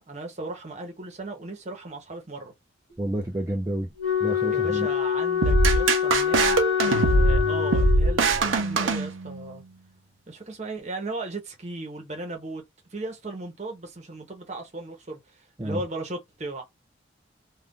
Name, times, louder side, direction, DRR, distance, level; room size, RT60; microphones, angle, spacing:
voice 1, 0.0-2.5 4.5-6.6 6.8-9.6 10.3-12.6 12.9-16.6, right 2 dB, 35° right, 0.9 m, -36 dB
voice 2, 3.0-3.9 4.2-4.9 15.6-15.8, right 1 dB, 15° right, 0.3 m, -29 dB
Wind instrument woodwind instrument, 4.0-8.4, left 8 dB, 65° left, 1.2 m, -25 dB
sound 1, 5.4-9.6, right 2 dB, 90° right, 0.7 m, -22 dB
2.5 x 2.3 x 3.5 m
head